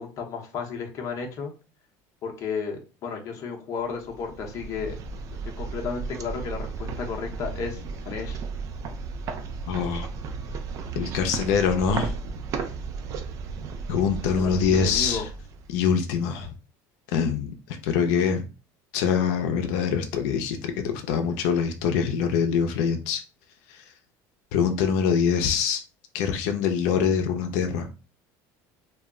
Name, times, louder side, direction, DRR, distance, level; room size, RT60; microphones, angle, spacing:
voice 1, 0.0-1.5 2.2-5.0 5.4-7.8 8.1-8.4 14.4-15.2, left 5 dB, 40° left, 1 dB, 0.6 m, -33 dB
sound 1, 4.0-16.1, right 5 dB, 40° right, 0.4 m, -34 dB
voice 2, 9.7-10.1 10.9-12.1 13.9-15.3 15.7-16.5 17.1-18.4 18.9-23.2 23.7-23.8 24.5-25.8 26.1-27.9, left 7 dB, 90° left, 5 dB, 0.4 m, -24 dB
2.3 x 2.0 x 3.5 m, 0.33 s
cardioid pair, 155°, 8 cm